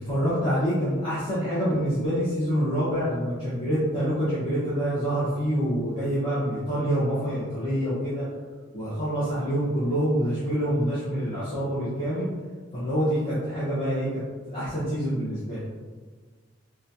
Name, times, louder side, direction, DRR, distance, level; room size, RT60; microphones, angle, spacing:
voice 1, 0.0-8.2 8.7-12.3 12.7-15.6, equal, 25° left, -13 dB, 0.9 m, -26 dB
3.9 x 2.3 x 2.7 m, 1.4 s
head